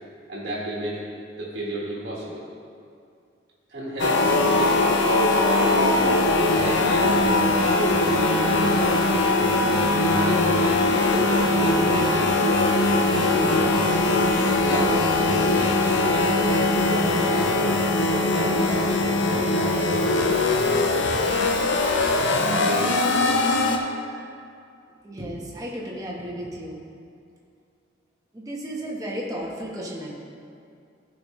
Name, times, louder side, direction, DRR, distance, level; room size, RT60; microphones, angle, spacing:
voice 1, 0.3-1.0 1.4-2.4 3.7-5.0 5.5-6.1 6.3-7.1 7.5-9.2 9.9-12.3 13.1-14.0 14.4-16.3 16.8-18.8 19.3-20.3 22.5-23.0, right 1 dB, 55° right, -7 dB, 1.5 m, -32 dB
sound 1, 4.0-23.8, left 2 dB, 70° left, 0.7 m, -21 dB
voice 2, 25.0-26.8 28.3-30.1, equal, 20° right, -3 dB, 1.1 m, -33 dB
14.5 x 5.1 x 3.2 m, 2.4 s
head